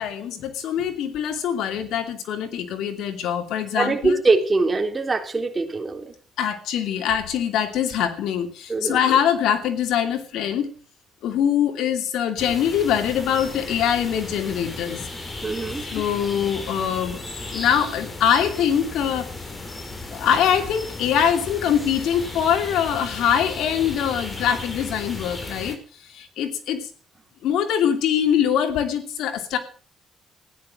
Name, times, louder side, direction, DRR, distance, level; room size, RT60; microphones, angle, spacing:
voice 1, 0.0-4.2 6.4-10.7 11.2-15.0 15.9-17.2 17.5-19.3 20.1-25.8 26.1-26.9 27.4-29.6, left 9 dB, 85° left, 8 dB, 2.7 m, -23 dB
voice 2, 3.8-6.1 8.7-9.0 15.4-15.8, right 3 dB, 25° right, 4 dB, 3.7 m, -22 dB
sound 1, 12.4-25.8, left 2 dB, 30° left, 4.5 m, -35 dB
15.5 x 10.5 x 7.6 m, 0.42 s
cardioid pair, 90°, 0 cm